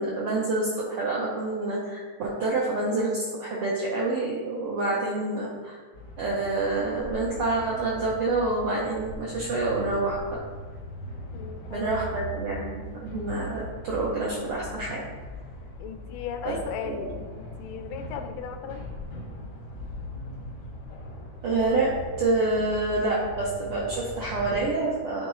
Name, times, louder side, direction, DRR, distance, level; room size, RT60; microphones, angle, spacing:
voice 1, 0.0-5.8 6.2-10.4 11.7-15.0 16.4-16.6 16.8-17.1 21.4-21.9 22.2-25.3, right 2 dB, 75° right, -4 dB, 1.3 m, -27 dB
sound 1, 5.9-24.6, left 1 dB, 65° left, 1.0 m, -40 dB
voice 2, 11.3-12.3 15.8-18.8, left 7 dB, 85° left, 6 dB, 2.2 m, -37 dB
10.0 x 3.6 x 3.1 m, 1.5 s
omnidirectional pair, 3.6 m